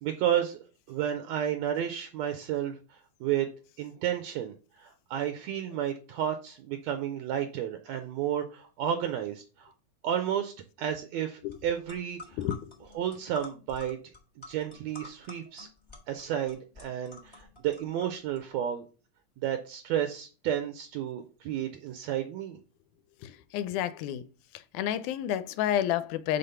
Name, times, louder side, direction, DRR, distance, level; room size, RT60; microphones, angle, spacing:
voice 1, 0.0-0.6 0.9-3.5 3.8-9.7 10.0-10.5 10.8-12.4 13.0-14.0 14.5-15.7 16.1-18.8 19.4-22.6, right 10 dB, 75° right, 1.7 m, -32 dB
sound 1, 11.5-11.6 11.8-18.4, left 3 dB, 25° left, 0.6 m, -48 dB
voice 2, 12.4-12.7 23.2-24.2 24.7-26.4, left 11 dB, 90° left, 2.1 m, -30 dB
5.2 x 4.1 x 5.6 m
omnidirectional pair, 3.4 m